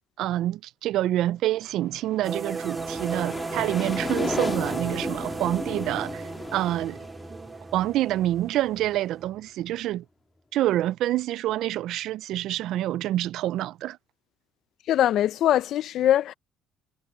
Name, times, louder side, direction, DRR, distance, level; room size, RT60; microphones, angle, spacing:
voice 1, 0.2-6.2 6.5-7.0 7.7-10.0 10.5-14.0, right 14 dB, 70° right, 0.4 m, -27 dB
sound 1, 1.8-8.6, left 3 dB, 20° left, 3.6 m, -35 dB
sound 2, 2.2-9.2, right 5 dB, 25° right, 2.2 m, -35 dB
sound 3, 2.5-10.4, right 1 dB, 5° right, 6.6 m, -49 dB
voice 2, 14.9-16.3, left 12 dB, 60° left, 0.6 m, -22 dB
cardioid pair, 125°, 0 cm